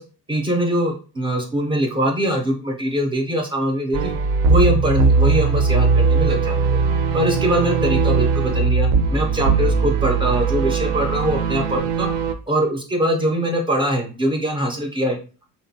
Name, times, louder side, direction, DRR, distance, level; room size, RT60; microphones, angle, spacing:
voice 1, 0.3-4.1 4.5-6.5 7.1-12.1 12.5-15.2, equal, 15° right, 2 dB, 0.4 m, -22 dB
sound 1, 3.9-12.3, right 4 dB, 80° right, 0.5 m, -19 dB
3.5 x 2.1 x 2.6 m, 0.36 s
cardioid pair, 160°, 40 cm